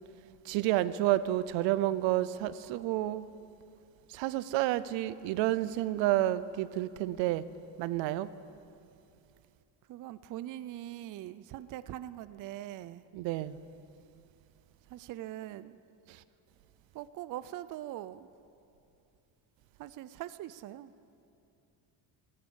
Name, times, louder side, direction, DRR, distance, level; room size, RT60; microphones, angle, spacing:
voice 1, 0.5-3.3 4.1-7.4 7.8-8.3 13.1-13.6 16.1-16.2, right 15 dB, 80° right, 16 dB, 0.7 m, -30 dB
voice 2, 9.9-13.0 14.9-15.8 16.9-18.3 19.8-20.9, right 13 dB, 45° right, 15 dB, 0.5 m, -42 dB
14.5 x 14.0 x 7.0 m, 2.6 s
cardioid pair, 140°, 44 cm